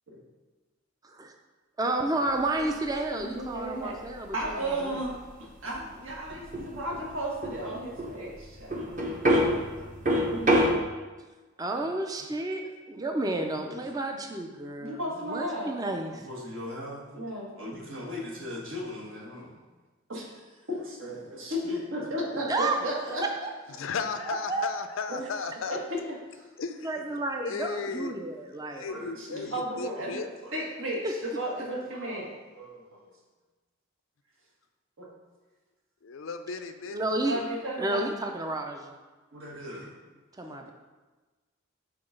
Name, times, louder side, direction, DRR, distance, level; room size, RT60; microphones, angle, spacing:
voice 1, 1.8-5.0 11.6-15.0 15.2-16.2 22.5-22.8 24.2-24.8 26.8-28.9 31.0-31.1 36.9-37.4 37.8-38.9 40.4-40.7, right 2 dB, 20° right, 3 dB, 0.4 m, -31 dB
sound 1, 2.3-10.7, equal, 40° right, 0.9 m, -28 dB
voice 2, 2.8-4.0 4.3-5.1 5.6-9.0 9.2-9.9 10.3-10.6 13.4-13.8 14.1-14.2 14.8-15.7 16.1-19.5 20.1-20.3 20.7-23.2 25.1-25.3 25.7-26.4 27.7-27.9 28.9-33.1 35.0-35.1 37.2-38.2 39.3-39.9, equal, 80° right, -3 dB, 1.6 m, -35 dB
voice 3, 23.7-25.8 26.6-27.0 27.4-28.2 28.7-30.3 36.0-37.0, left 5 dB, 80° left, 8 dB, 0.5 m, -35 dB
5.8 x 3.9 x 5.1 m, 1.3 s
head